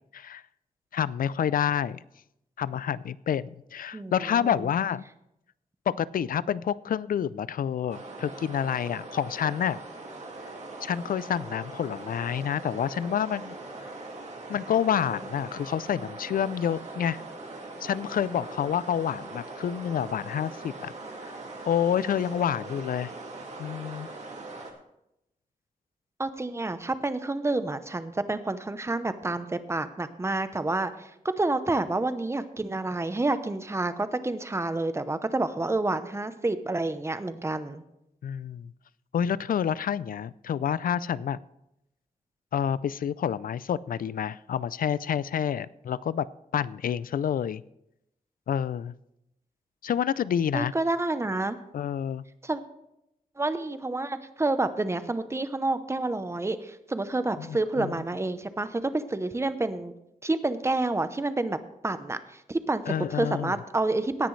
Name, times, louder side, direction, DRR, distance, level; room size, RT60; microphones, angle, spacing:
voice 1, 0.9-2.0 2.6-3.4 3.7-5.0 5.9-9.8 10.8-13.6 14.5-17.2 17.8-20.9 21.3-21.4 21.7-23.1 23.6-24.1 38.2-38.7 39.1-41.4 42.5-46.3 46.5-47.6 48.5-48.9 49.8-50.7 51.7-52.2 57.4-58.0 62.9-63.6, left 9 dB, 80° left, 19 dB, 0.4 m, -28 dB
voice 2, 3.9-4.7 26.2-37.8 50.5-51.6 52.4-52.6 53.4-59.9 60.2-61.6 61.8-62.8 63.1-64.3, right 2 dB, 20° right, 11 dB, 0.8 m, -29 dB
sound 1, 7.9-24.7, right 2 dB, 50° right, 2.2 m, -41 dB
17.5 x 10.0 x 3.2 m, 0.84 s
wide cardioid pair, 120°, 14 cm